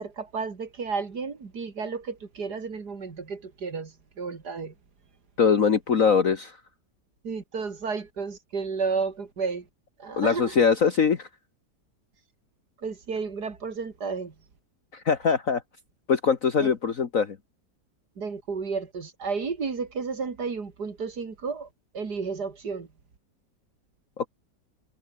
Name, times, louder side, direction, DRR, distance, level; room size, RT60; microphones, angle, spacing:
voice 1, 0.0-4.7 7.2-9.7 10.0-10.6 12.8-14.3 16.6-16.7 18.2-21.7 21.9-22.9, right 5 dB, 65° right, 3.1 m, -32 dB
voice 2, 5.4-6.6 10.2-11.3 14.9-15.6 16.1-17.4 24.2-24.3, left 6 dB, 50° left, 1.8 m, -22 dB
omnidirectional pair, 1.9 m